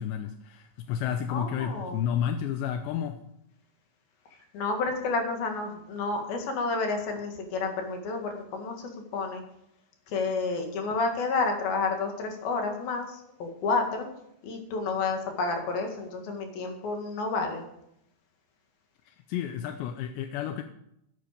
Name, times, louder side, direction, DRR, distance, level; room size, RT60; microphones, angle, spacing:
voice 1, 0.0-3.2 19.1-20.6, left 9 dB, 80° left, 8 dB, 2.6 m, -31 dB
voice 2, 1.3-2.0 4.5-9.4 10.1-14.1 14.4-17.7, left 3 dB, 55° left, 4 dB, 3.3 m, -30 dB
12.0 x 11.5 x 5.1 m, 0.77 s
omnidirectional pair, 5.6 m